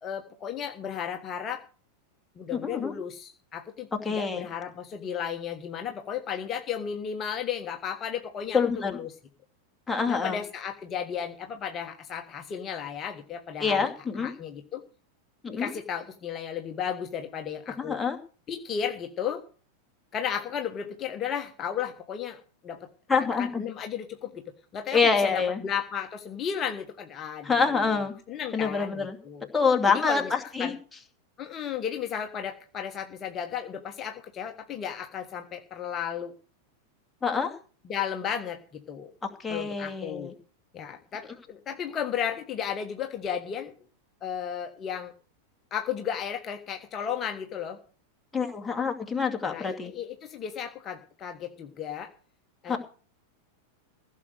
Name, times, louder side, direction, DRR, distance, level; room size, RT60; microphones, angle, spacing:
voice 1, 0.0-1.6 2.4-9.1 10.1-13.9 14.2-14.8 15.5-18.0 18.5-19.4 20.1-22.9 23.4-24.4 24.7-28.0 28.3-29.5 29.9-30.3 30.6-30.7 31.4-36.3 37.8-39.1 39.5-40.3 40.7-43.7 44.2-45.1 45.7-47.8 49.5-52.1 52.6-52.8, left 8 dB, 30° left, 4 dB, 1.5 m, -34 dB
voice 2, 2.5-2.9 4.0-4.5 8.5-9.0 9.9-10.4 13.6-14.3 15.4-15.7 17.8-18.2 23.1-23.6 24.9-25.6 27.4-28.1 28.5-29.2 29.5-30.8 37.2-37.5 39.2-40.3 48.3-49.9 52.7-52.8, left 5 dB, 10° left, 3 dB, 2.4 m, -26 dB
16.0 x 6.6 x 8.1 m, 0.38 s
figure-of-eight pair, 90°, 0 cm